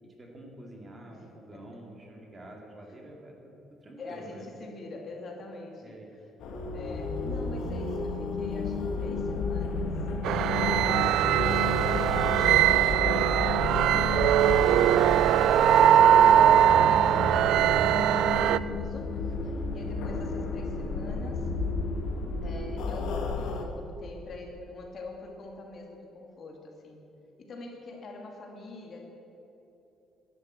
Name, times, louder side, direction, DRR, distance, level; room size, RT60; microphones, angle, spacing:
voice 1, 0.0-4.5 5.8-6.2, right 1 dB, 25° right, 1 dB, 2.3 m, -48 dB
voice 2, 1.1-1.6 4.0-6.0 6.7-10.0 10.2-21.5 22.4-27.0 27.4-29.0, left 2 dB, 40° left, 1 dB, 2.3 m, -44 dB
sound 1, 6.4-23.6, left 3 dB, 75° left, 1.6 m, -32 dB
sound 2, 10.2-18.6, right 11 dB, 75° right, 0.3 m, -21 dB
Alarm, 11.4-13.2 14.4-16.2, left 2 dB, 10° left, 1.9 m, -41 dB
13.0 x 10.5 x 8.1 m, 2.9 s
cardioid pair, 155°, 0 cm